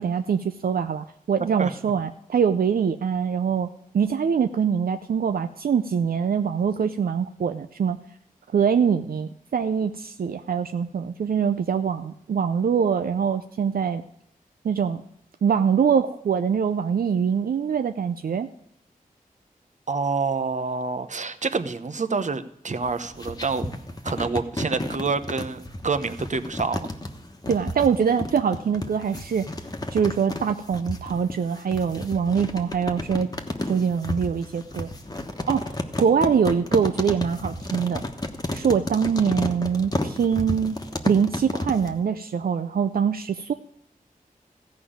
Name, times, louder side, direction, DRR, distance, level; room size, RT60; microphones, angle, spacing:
voice 1, 0.0-3.7 3.9-8.0 8.5-14.0 14.6-15.0 15.4-18.5 27.5-29.5 29.9-33.3 33.7-34.9 35.5-38.0 38.5-40.8 41.0-43.5, right 7 dB, 80° right, 9 dB, 0.5 m, -23 dB
voice 2, 19.9-23.7 24.0-26.9, right 4 dB, 55° right, 9 dB, 0.9 m, -27 dB
sound 1, 22.8-41.9, left 1 dB, 25° left, 1.2 m, -32 dB
14.5 x 5.3 x 8.7 m, 0.76 s
wide cardioid pair, 70°, 15 cm